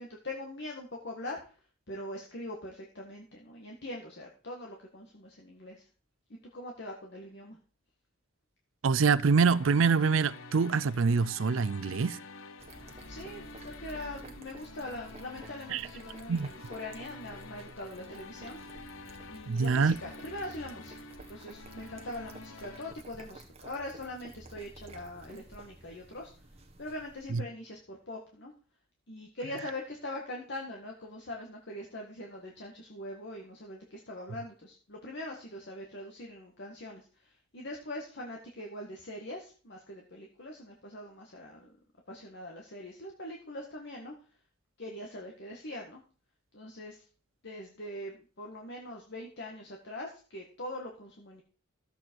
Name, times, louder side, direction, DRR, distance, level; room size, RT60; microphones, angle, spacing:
voice 1, 0.0-1.5 1.9-5.9 6.5-7.6 13.1-18.6 19.3-20.9 21.3-26.3 26.8-28.5 29.1-41.7 42.1-44.1 44.8-46.0 46.5-47.0 47.4-51.4, left 1 dB, 60° left, 1.7 m, -42 dB
voice 2, 8.8-12.2 15.7-15.8 16.3-16.5 19.5-20.0 27.3-27.4, right 5 dB, 70° right, 0.5 m, -25 dB
sound 1, 9.3-22.9, left 3 dB, 90° left, 0.9 m, -49 dB
sound 2, 12.6-27.4, right 2 dB, 30° right, 1.5 m, -52 dB
13.0 x 8.0 x 4.6 m
head